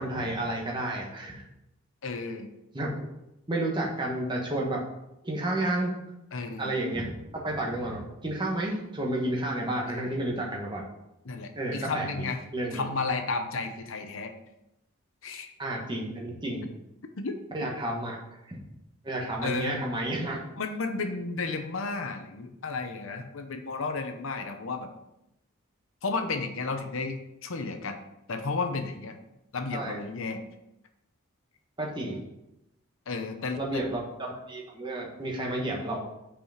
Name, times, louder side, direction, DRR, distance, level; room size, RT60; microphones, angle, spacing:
voice 1, 0.0-1.4 2.7-3.0 3.5-4.8 5.2-5.9 6.6-7.1 7.4-10.8 11.5-12.8 15.6-16.6 17.5-18.2 18.5-18.6 19.0-20.4 29.7-30.0 31.8-32.2 33.6-36.0, right 1 dB, 20° right, -2 dB, 1.3 m, -31 dB
voice 2, 2.0-2.5 6.3-6.7 9.9-10.3 11.3-12.4 12.7-14.3 15.2-15.5 17.2-17.7 19.4-19.9 20.6-24.9 26.0-28.0 28.3-29.2 29.5-30.4 33.1-33.8, left 3 dB, 65° left, 6 dB, 0.8 m, -33 dB
6.0 x 4.9 x 5.6 m, 0.88 s
head